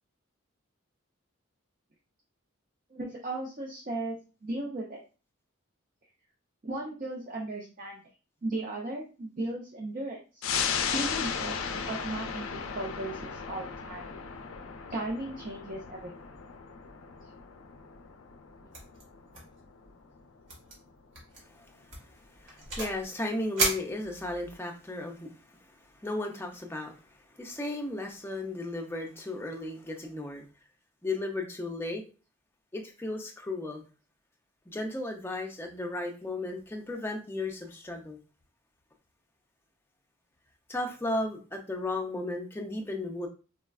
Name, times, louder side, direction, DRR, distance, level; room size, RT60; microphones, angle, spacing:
voice 1, 2.9-5.0 6.6-8.0 8.4-10.5 10.9-14.1 14.9-16.1, right 2 dB, 40° right, -1 dB, 0.5 m, -36 dB
sound 1, 10.4-21.4 21.8-21.9, left 6 dB, 80° left, 0.4 m, -36 dB
sound 2, 18.7-19.0 19.3-19.6 19.8-19.9 20.5-20.7 21.1-21.4 21.9-23.0 23.6-24.5, right 3 dB, 65° right, 1.2 m, -33 dB
voice 2, 21.5-22.1 22.4-25.6 25.9-30.4 31.0-32.1 32.7-33.8 34.7-38.2 40.7-43.3, left 2 dB, 10° left, 2 dB, 0.4 m, -35 dB
4.1 x 2.2 x 2.3 m, 0.34 s
head